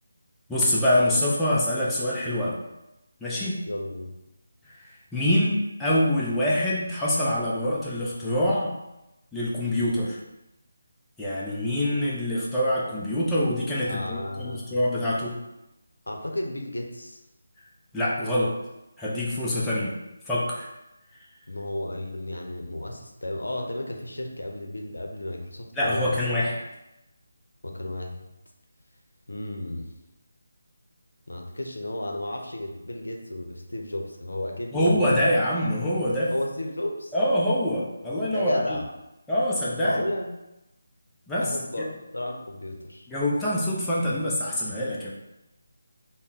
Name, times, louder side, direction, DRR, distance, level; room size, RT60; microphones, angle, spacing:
voice 1, 0.5-2.6 3.2-3.6 4.8-8.7 9.3-10.2 11.2-15.3 17.9-18.5 19.0-19.9 20.3-20.7 25.8-26.6 34.7-36.3 37.1-38.8 39.3-40.0 41.3-41.9 43.1-45.1, left 1 dB, 5° left, -8 dB, 0.5 m, -25 dB
voice 2, 3.7-4.1 13.8-14.6 16.1-17.2 21.5-26.2 27.6-28.2 29.3-29.9 31.3-35.2 36.3-37.1 38.3-38.9 39.8-40.3 41.4-41.9 42.1-43.1, left 1 dB, 90° left, 3 dB, 0.6 m, -33 dB
3.5 x 2.1 x 4.0 m, 0.93 s
figure-of-eight pair, 160°, 0 cm